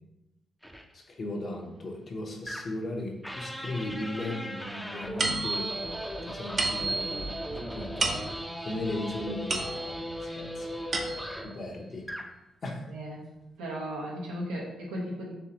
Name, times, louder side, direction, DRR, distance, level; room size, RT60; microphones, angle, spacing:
sound 1, 0.6-0.8 2.5-2.9 3.2-11.6 12.0-12.3, equal, ahead, 0.6 m, -38 dB
voice 1, 0.9-6.0 6.3-7.3 7.7-8.4 8.6-10.0 10.4-10.7 11.4-12.0 12.6-12.8, left 2 dB, 50° left, 0 dB, 0.9 m, -36 dB
sound 2, 5.2-10.2 10.6-11.5, right 3 dB, 55° right, 0.8 m, -33 dB
voice 2, 10.1-10.6 12.9-13.2 13.6-15.3, equal, 90° right, -3 dB, 1.1 m, -36 dB
4.5 x 3.2 x 2.9 m, 0.96 s
supercardioid pair, 50°, 0 cm